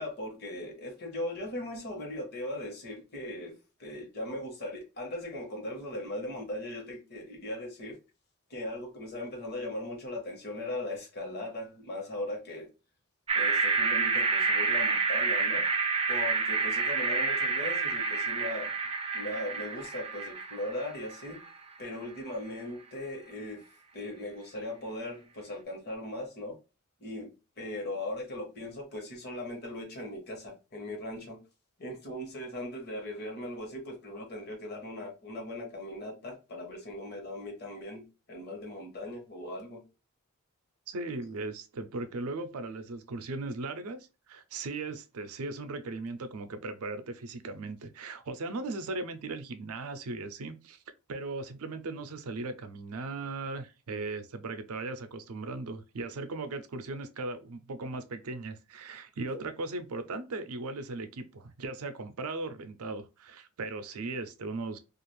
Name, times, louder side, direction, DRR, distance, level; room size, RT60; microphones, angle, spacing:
voice 1, 0.0-3.5 3.8-7.9 8.5-12.7 13.3-15.6 16.1-18.7 19.1-21.4 21.8-23.6 23.9-26.5 27.0-31.4 31.8-39.8, left 1 dB, 45° left, 1.0 m, -39 dB
sound 1, 13.3-21.5, right 4 dB, 25° right, 0.4 m, -29 dB
voice 2, 40.9-50.8 51.1-64.8, right 3 dB, 75° right, 0.5 m, -38 dB
2.4 x 2.4 x 3.1 m
head